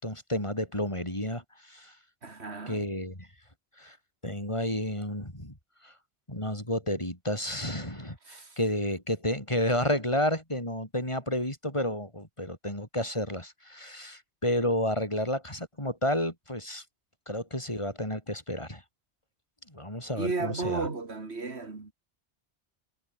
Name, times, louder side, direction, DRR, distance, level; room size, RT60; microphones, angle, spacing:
voice 1, 0.0-1.9 2.7-3.3 3.8-4.0 4.2-5.5 5.8-5.9 6.3-16.8 17.3-18.8 19.7-20.9, left 1 dB, 25° left, 7.7 m, -31 dB
voice 2, 2.2-2.9 8.2-8.6 20.1-21.9, right 3 dB, 70° right, 2.9 m, -34 dB
omnidirectional pair, 1.1 m